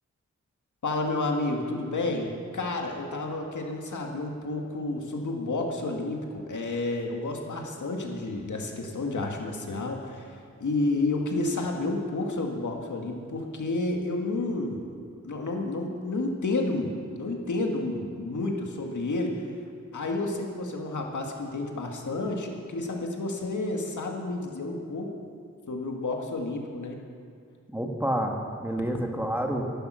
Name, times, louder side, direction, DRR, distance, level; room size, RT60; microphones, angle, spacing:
voice 1, 0.8-14.9 15.2-19.4 19.9-25.1 25.7-27.0, left 2 dB, 80° left, 1 dB, 1.9 m, -30 dB
voice 2, 27.7-29.6, right 1 dB, 5° right, 2 dB, 1.4 m, -29 dB
14.5 x 11.5 x 6.3 m, 2.3 s
wide cardioid pair, 115°, 30 cm